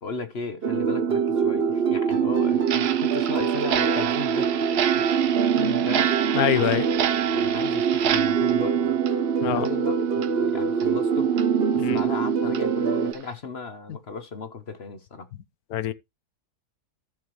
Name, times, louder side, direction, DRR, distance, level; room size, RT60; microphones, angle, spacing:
voice 1, 0.0-4.6 4.9-5.1 5.8-6.1 6.5-6.7 7.3-9.0 9.4-11.3 11.7-15.3, left 4 dB, 45° left, 1.1 m, -36 dB
sound 1, 0.6-13.1, right 7 dB, 45° right, 0.9 m, -24 dB
Clock, 2.6-9.9 10.2-10.3 10.8-10.9 11.4-11.5 12.0-12.1 12.5-12.6 13.1-13.3, right 10 dB, 70° right, 1.3 m, -29 dB
voice 2, 6.3-6.8 9.4-9.7 11.8-12.0 15.7-15.9, left 12 dB, 70° left, 1.1 m, -25 dB
14.5 x 6.9 x 3.1 m
omnidirectional pair, 1.8 m